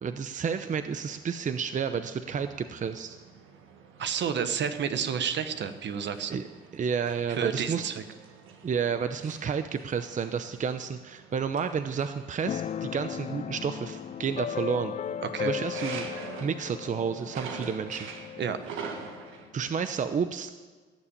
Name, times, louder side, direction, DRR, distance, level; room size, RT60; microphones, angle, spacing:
voice 1, 0.0-3.2 6.3-6.5 6.7-7.9 8.6-14.9 15.4-16.1 16.4-18.1 19.5-20.5, right 6 dB, 40° right, 9 dB, 0.7 m, -31 dB
sound 1, 0.7-19.5, right 6 dB, 90° right, 1.6 m, -46 dB
voice 2, 4.0-6.4 7.3-8.0 15.3-15.5 18.4-18.6, right 7 dB, 65° right, 10 dB, 1.2 m, -30 dB
Keyboard (musical), 12.5-20.0, left 9 dB, 35° left, 0.4 m, -37 dB
17.0 x 7.1 x 8.7 m, 1.4 s
cardioid pair, 90°, 20 cm